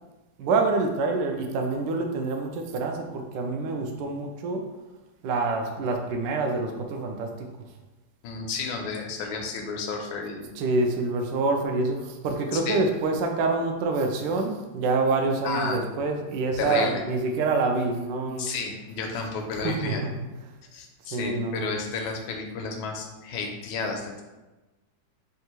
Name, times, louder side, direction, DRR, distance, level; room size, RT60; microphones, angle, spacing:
voice 1, 0.4-4.7 5.2-7.5 10.5-18.6 19.6-20.5 21.1-21.7, right 3 dB, 75° right, 4 dB, 1.1 m, -26 dB
voice 2, 8.2-10.5 12.5-12.8 15.4-15.8 16.6-17.0 18.4-20.0 20.7-24.2, left 4 dB, 85° left, 2 dB, 1.4 m, -32 dB
5.3 x 2.4 x 2.9 m, 1.1 s
omnidirectional pair, 2.1 m